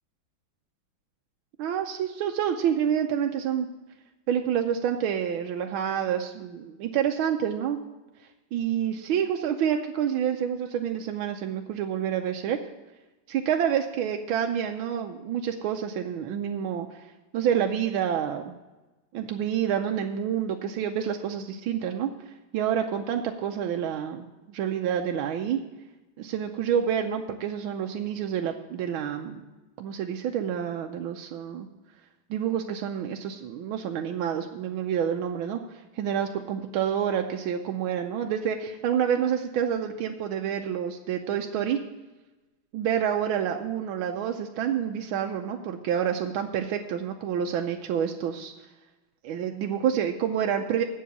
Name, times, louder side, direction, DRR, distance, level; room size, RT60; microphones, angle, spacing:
voice 1, 1.6-3.7 4.3-7.8 8.5-12.6 13.3-16.9 17.3-18.5 19.1-22.1 22.5-25.6 26.2-29.4 29.8-31.7 32.3-41.8 42.7-48.5 49.3-50.8, right 9 dB, 80° right, 3 dB, 1.5 m, -28 dB
8.0 x 7.5 x 8.2 m, 1.1 s
omnidirectional pair, 2.2 m